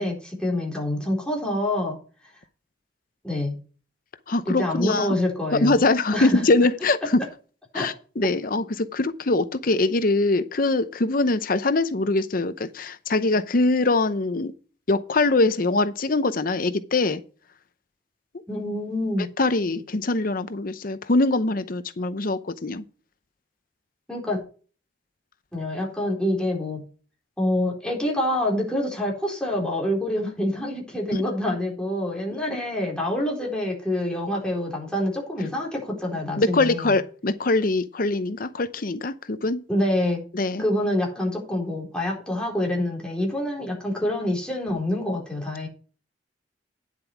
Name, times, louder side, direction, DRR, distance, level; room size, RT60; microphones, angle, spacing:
voice 1, 0.0-2.0 3.2-3.6 4.5-5.8 6.1-6.4 7.7-7.9 18.5-19.3 24.1-24.4 25.5-26.8 27.4-37.0 39.7-40.2 40.6-45.7, left 1 dB, 5° left, 4.0 m, -26 dB
voice 2, 4.3-5.1 5.6-7.2 7.7-14.5 14.9-17.2 19.4-22.8 32.5-32.6 36.4-39.6 40.3-40.6, left 2 dB, 50° left, 0.8 m, -23 dB
10.0 x 7.5 x 4.6 m
head